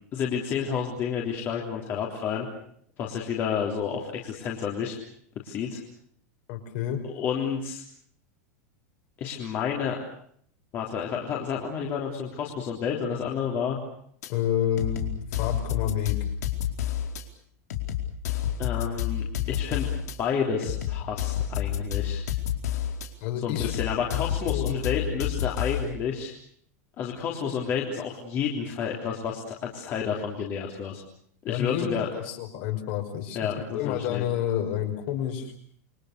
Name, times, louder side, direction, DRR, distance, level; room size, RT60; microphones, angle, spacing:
voice 1, 0.1-2.5 3.0-5.0 5.4-5.8 7.0-7.8 9.2-10.0 10.7-13.8 18.6-19.9 20.2-22.2 23.4-26.3 27.0-31.0 31.4-32.1 33.3-34.3, left 7 dB, 25° left, -1 dB, 3.6 m, -30 dB
voice 2, 6.5-7.0 14.3-16.2 23.2-23.8 24.4-24.8 31.5-35.5, left 10 dB, 40° left, 5 dB, 5.3 m, -29 dB
sound 1, 14.2-14.3 14.8-17.2 17.7-20.2 20.6-23.1 23.6-25.9, left 11 dB, 85° left, 4.6 m, -29 dB
28.5 x 24.0 x 6.8 m, 0.64 s
supercardioid pair, 175°, 9 cm